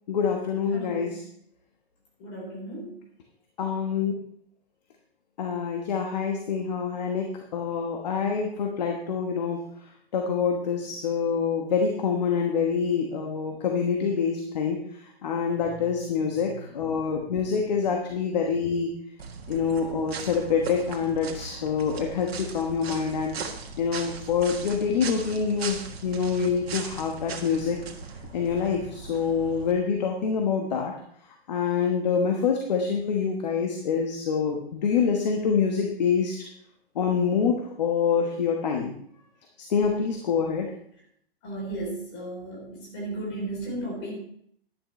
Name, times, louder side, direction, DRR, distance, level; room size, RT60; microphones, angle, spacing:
voice 1, 0.1-1.2 3.6-4.1 5.4-9.6 10.1-14.8 15.2-18.9 19.5-23.3 23.8-27.8 28.3-30.9 31.5-36.4 36.9-38.9 39.7-40.7, left 6 dB, 45° left, 2 dB, 1.3 m, -26 dB
voice 2, 0.7-1.2 2.2-3.0 16.3-17.6 41.4-44.2, right 1 dB, 25° left, -2 dB, 3.8 m, -36 dB
sound 1, 19.2-29.7, right 5 dB, 80° right, 1.7 m, -38 dB
11.0 x 11.0 x 3.2 m, 0.66 s
hypercardioid pair, 175°, 31 cm